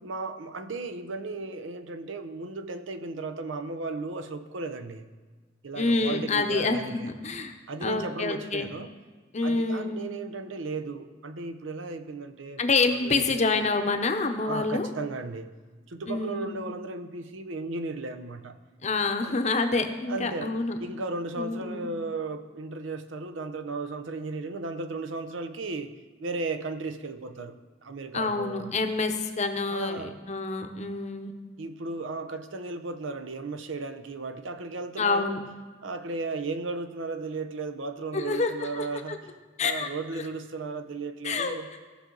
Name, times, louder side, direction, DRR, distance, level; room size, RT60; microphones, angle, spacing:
voice 1, 0.0-5.1 5.6-7.1 7.7-8.9 9.4-12.6 12.9-13.6 14.4-15.5 15.9-18.6 19.2-19.4 20.1-20.5 20.8-28.7 29.7-30.2 31.6-35.4 35.8-39.3 39.6-41.7, right 3 dB, 85° right, 8 dB, 0.7 m, -35 dB
voice 2, 5.8-7.5 7.8-8.7 9.3-10.0 12.6-14.9 16.1-16.6 18.8-20.8 21.4-21.9 28.1-31.3 35.0-35.4 38.1-39.2 39.6-39.9 41.2-41.6, left 3 dB, 35° left, 6 dB, 0.8 m, -27 dB
16.5 x 6.2 x 3.9 m, 1.4 s
head